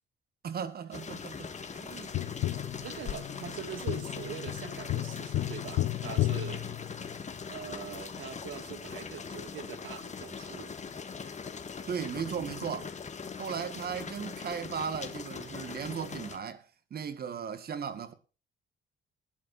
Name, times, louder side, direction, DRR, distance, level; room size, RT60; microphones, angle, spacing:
voice 1, 0.4-2.1 11.9-12.9 13.4-16.6 16.9-18.1, right 7 dB, 50° right, 1.7 m, -36 dB
sound 1, 0.9-16.4, left 5 dB, 35° left, 1.9 m, -41 dB
Tap, 2.1-7.4 10.0-10.1, left 15 dB, 80° left, 0.8 m, -33 dB
voice 2, 2.8-6.7 7.5-10.7, right 9 dB, 80° right, 1.9 m, -43 dB
20.0 x 11.0 x 2.6 m
cardioid pair, 90°, 20 cm